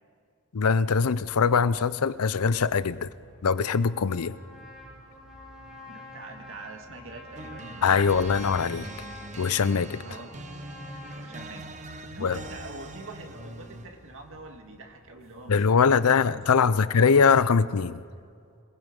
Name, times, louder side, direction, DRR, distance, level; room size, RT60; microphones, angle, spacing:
voice 1, 0.5-3.1 3.4-4.4 7.8-8.9 9.4-10.0 12.2-12.4 15.5-18.0, left 5 dB, 80° left, 17 dB, 0.6 m, -22 dB
sound 1, 0.9-18.1, equal, 45° left, 3.6 m, -54 dB
Trumpet, 3.5-11.5, left 2 dB, 5° right, 5.2 m, -47 dB
voice 2, 5.9-8.3 10.0-10.4 11.2-17.0, right 2 dB, 65° right, 4 dB, 2.2 m, -45 dB
sound 2, 7.4-14.1, right 2 dB, 35° right, 0.9 m, -42 dB
26.5 x 20.0 x 5.3 m, 2.3 s
head